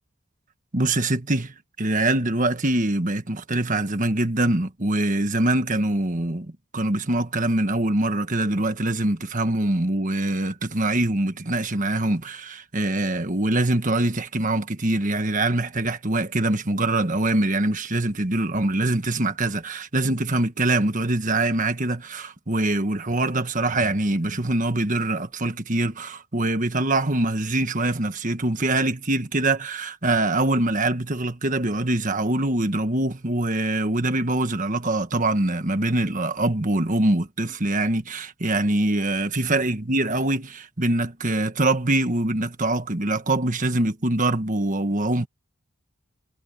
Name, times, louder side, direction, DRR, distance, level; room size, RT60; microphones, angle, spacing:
voice 1, 0.7-45.3, right 2 dB, 35° right, 1.5 m, -24 dB
head